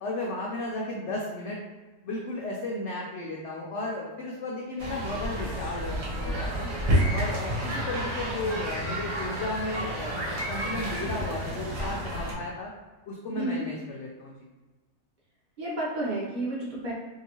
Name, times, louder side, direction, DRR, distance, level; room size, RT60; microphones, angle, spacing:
voice 1, 0.0-1.6 2.0-6.7 7.1-10.2 10.5-12.7 13.1-14.5, left 2 dB, 75° left, -3 dB, 0.6 m, -34 dB
sound 1, 4.8-12.3, equal, 55° right, 1.2 m, -30 dB
voice 2, 13.3-13.6 15.6-16.9, right 1 dB, 35° right, -7 dB, 0.8 m, -31 dB
2.9 x 2.7 x 2.8 m, 1.3 s
omnidirectional pair, 1.7 m